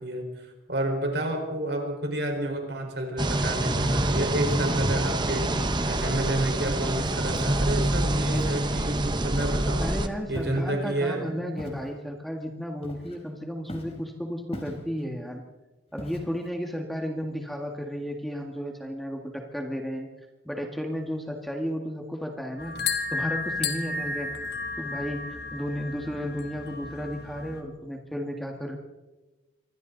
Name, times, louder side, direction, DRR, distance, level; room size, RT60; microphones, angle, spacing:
voice 1, 0.0-9.9 10.3-11.3, right 1 dB, 60° right, 3 dB, 4.8 m, -30 dB
sound 1, 3.2-10.1, right 1 dB, 25° right, 1.0 m, -26 dB
Walk footsteps, 7.3-7.7 8.3-8.6 9.4-9.7 10.3-10.7 11.6-11.9 12.8-13.3 13.7-14.0 14.5-15.1 16.0-16.5, equal, 30° left, 3.8 m, -39 dB
voice 2, 9.8-15.4 15.9-20.1 20.5-22.8 23.1-24.3 24.8-28.8, equal, ahead, 1 dB, 1.9 m, -33 dB
sound 2, 22.6-27.6, left 4 dB, 55° left, 2.6 m, -33 dB
27.5 x 24.0 x 4.1 m, 1.1 s
head